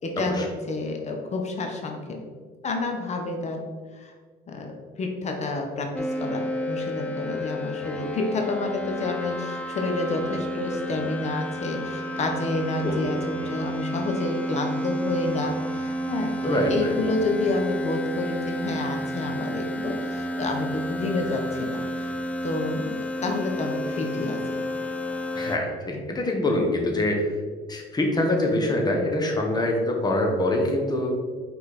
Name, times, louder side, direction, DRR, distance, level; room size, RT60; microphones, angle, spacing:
voice 1, 0.0-2.2 2.6-3.7 4.0-4.1 4.5-22.1 22.4-24.6, left 2 dB, 40° left, 3 dB, 1.0 m, -29 dB
sound 1, 5.9-25.6, equal, 10° left, 0.5 m, -31 dB
voice 2, 16.4-16.9 25.3-27.2 27.7-31.1, left 1 dB, 25° left, 2 dB, 1.2 m, -24 dB
5.3 x 4.4 x 4.1 m, 1.5 s
cardioid pair, 110°, 17 cm